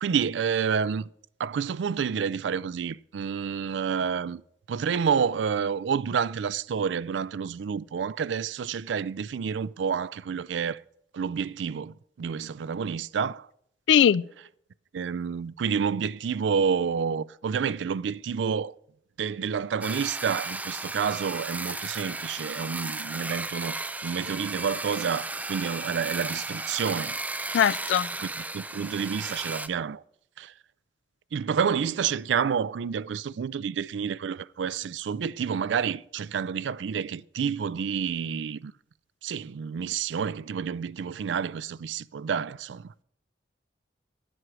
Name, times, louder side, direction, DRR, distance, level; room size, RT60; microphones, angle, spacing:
voice 1, 0.0-1.1 1.4-4.4 4.7-10.8 11.1-13.5 14.9-18.7 19.2-27.2 28.2-28.3 28.5-30.0 30.4-30.5 31.3-38.7 39.2-42.9, right 6 dB, 85° right, 0.4 m, -29 dB
voice 2, 13.9-14.2 27.5-28.1, left 8 dB, 85° left, 0.3 m, -20 dB
sound 1, 19.8-29.7, right 2 dB, 10° right, 0.4 m, -34 dB
10.5 x 7.9 x 6.0 m
head